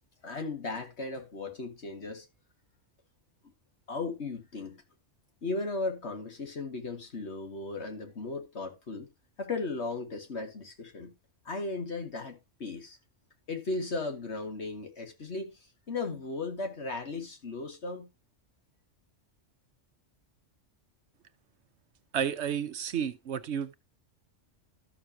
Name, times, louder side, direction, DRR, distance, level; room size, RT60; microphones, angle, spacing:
voice 1, 0.2-2.3 3.9-4.8 5.4-9.1 9.4-11.1 11.5-13.0 13.5-18.1, left 3 dB, 60° left, 2.1 m, -36 dB
voice 2, 22.1-23.7, right 8 dB, 65° right, 1.0 m, -31 dB
13.5 x 6.8 x 2.8 m
omnidirectional pair, 1.3 m